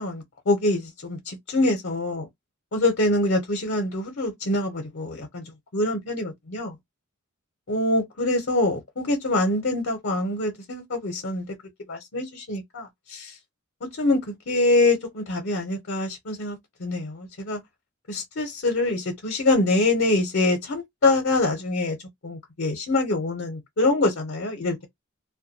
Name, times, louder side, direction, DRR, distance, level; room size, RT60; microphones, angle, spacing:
voice 1, 0.0-2.3 2.7-6.8 7.7-11.5 11.9-13.4 13.9-17.6 18.1-22.0 22.2-24.9, left 2 dB, 60° left, 0.7 m, -25 dB
2.3 x 2.2 x 2.7 m
head